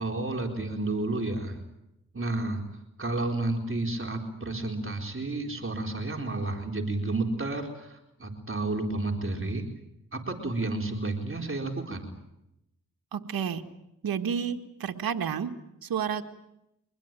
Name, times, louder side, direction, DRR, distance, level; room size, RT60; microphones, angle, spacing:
voice 1, 0.0-1.6 2.1-2.6 3.0-9.7 10.1-12.1, right 2 dB, 35° right, 3 dB, 4.2 m, -31 dB
voice 2, 13.1-13.6 14.0-15.5 15.8-16.2, right 7 dB, 85° right, 6 dB, 1.7 m, -30 dB
24.5 x 20.5 x 9.0 m, 0.85 s
cardioid pair, 55°, 35 cm